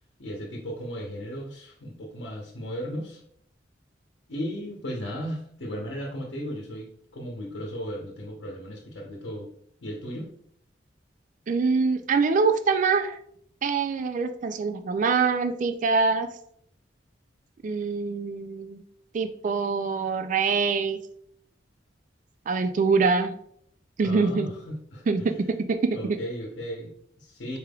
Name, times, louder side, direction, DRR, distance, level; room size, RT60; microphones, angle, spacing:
voice 1, 0.2-3.2 4.3-9.5 9.8-10.3 24.0-25.5 25.9-27.6, equal, 80° left, -1 dB, 0.8 m, -36 dB
voice 2, 11.5-13.2 13.6-16.3 17.6-18.8 19.1-21.0 22.5-23.3 24.0-24.5 25.1-26.2, right 4 dB, 45° right, 8 dB, 0.3 m, -24 dB
4.6 x 3.4 x 2.3 m, 0.67 s
head